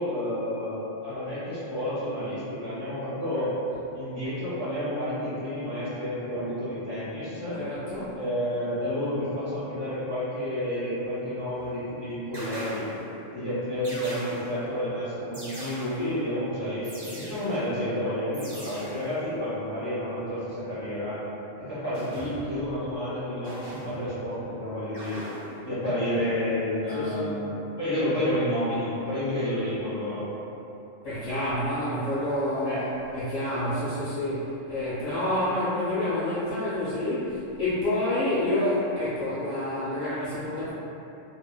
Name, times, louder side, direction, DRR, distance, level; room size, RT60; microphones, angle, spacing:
voice 1, 0.0-3.5 3.9-7.6 8.1-12.8 13.3-21.2 21.6-25.2 25.6-27.5 27.8-30.3 32.6-32.8, left 1 dB, 25° left, -13 dB, 0.6 m, -30 dB
voice 2, 7.6-8.2 26.9-27.4 31.0-40.7, left 1 dB, 85° left, -15 dB, 1.4 m, -28 dB
sound 1, 11.5-11.8 12.3-13.2 13.8-14.7 15.3-16.3 16.8-17.8 18.3-19.2 21.9-22.7 23.4-24.3 24.9-25.7, equal, 40° right, 0.3 m, -41 dB
3.1 x 2.2 x 2.2 m, 2.9 s
omnidirectional pair, 1.4 m